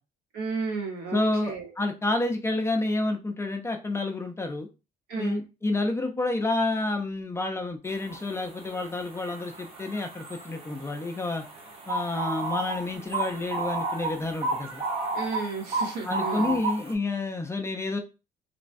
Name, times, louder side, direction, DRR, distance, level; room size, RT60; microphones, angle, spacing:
voice 1, 0.3-1.7 5.1-5.4 15.1-16.6, right 4 dB, 75° right, 1 dB, 1.1 m, -33 dB
voice 2, 1.1-4.7 5.2-11.4 11.9-14.8 16.0-18.0, left 2 dB, 15° left, 3 dB, 0.5 m, -29 dB
sound 1, 8.0-8.2 8.5-16.9, right 3 dB, 35° right, 0.9 m, -33 dB
3.2 x 2.1 x 2.5 m, 0.29 s
cardioid pair, 110°, 17 cm